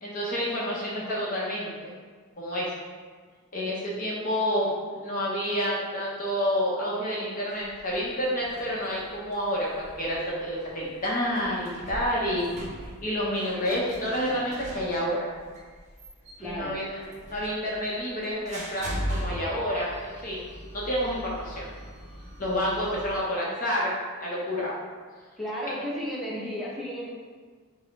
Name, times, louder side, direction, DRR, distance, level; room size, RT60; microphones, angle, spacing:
voice 1, 0.0-1.9 2.4-2.7 3.5-12.4 13.0-15.3 16.4-16.9 17.3-20.4 20.7-21.7 22.4-23.9 24.2-24.7, equal, 35° left, -5 dB, 0.7 m, -29 dB
sound 1, 7.5-23.2, equal, 35° right, 0.7 m, -40 dB
voice 2, 16.4-16.8 25.4-27.1, equal, ahead, -6 dB, 0.7 m, -33 dB
5.3 x 2.0 x 3.9 m, 1.5 s
head